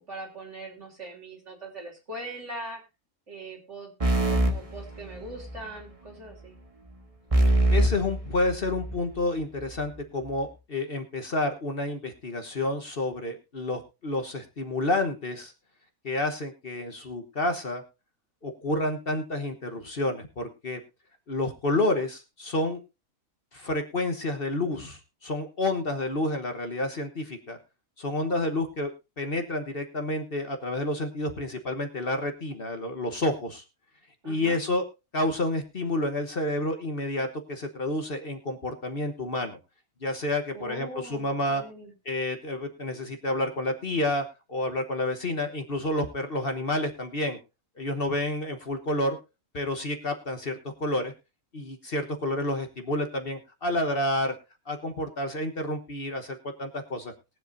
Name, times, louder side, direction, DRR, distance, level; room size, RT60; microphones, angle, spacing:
voice 1, 0.0-2.8 3.3-3.9 4.2-6.6 34.2-34.6 40.5-41.9, right 1 dB, 55° right, 0 dB, 3.6 m, -41 dB
sound 1, 4.0-5.6 7.3-9.1, right 1 dB, 25° right, 1.4 m, -24 dB
voice 2, 7.7-15.5 16.0-17.8 18.4-20.8 21.3-22.8 23.5-27.6 28.0-28.9 29.2-33.6 34.2-34.8 35.1-39.6 40.0-41.6 42.0-47.4 47.8-49.2 49.5-51.1 51.5-54.3 54.7-57.1, left 1 dB, 45° left, 6 dB, 1.3 m, -29 dB
21.0 x 7.9 x 2.6 m, 0.27 s
omnidirectional pair, 1.5 m